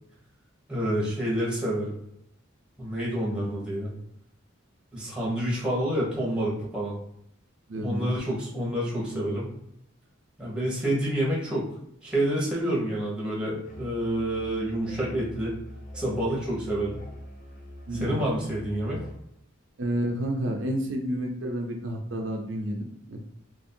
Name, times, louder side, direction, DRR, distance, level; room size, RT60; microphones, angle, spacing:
voice 1, 0.7-1.9 2.8-3.9 4.9-7.0 7.8-9.5 10.4-11.7 12.0-15.6 15.9-17.0 18.0-19.0, right 1 dB, 5° right, -4 dB, 1.1 m, -28 dB
voice 2, 7.7-8.1 17.9-18.1 19.8-23.3, right 1 dB, 70° right, 2 dB, 0.7 m, -30 dB
Musical instrument, 13.6-19.2, left 1 dB, 40° left, 0.8 m, -43 dB
3.0 x 2.6 x 4.3 m, 0.73 s
head